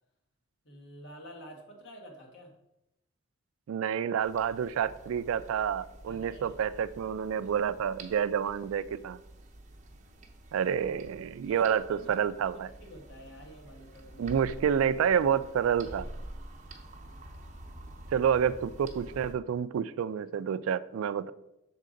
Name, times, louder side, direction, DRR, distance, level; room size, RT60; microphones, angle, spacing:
voice 1, 0.6-2.5 6.1-6.6 11.5-12.1 12.8-14.4, equal, 55° left, 1.4 m, -49 dB
voice 2, 3.7-9.2 10.5-12.7 14.2-16.1 18.1-21.3, right 8 dB, 80° right, 0.3 m, -29 dB
sound 1, 4.2-19.3, right 1 dB, 35° right, 0.7 m, -48 dB
6.6 x 3.7 x 5.0 m
head